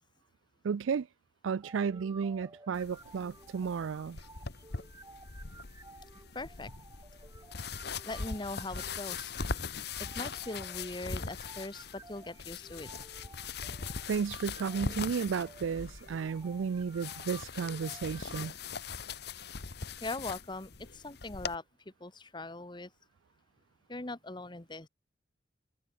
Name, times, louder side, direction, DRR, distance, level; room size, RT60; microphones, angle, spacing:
voice 1, 0.6-1.1 1.4-4.2 14.1-18.5, right 6 dB, 85° right, 0.4 m, -33 dB
sound 1, 1.6-18.5, right 3 dB, 20° right, 0.8 m, -55 dB
sound 2, 2.7-21.6, left 5 dB, 55° left, 1.2 m, -41 dB
voice 2, 6.3-6.7 8.0-9.3 10.0-12.9 20.0-21.6 22.0-22.9 23.9-24.9, left 2 dB, 25° left, 1.1 m, -41 dB
head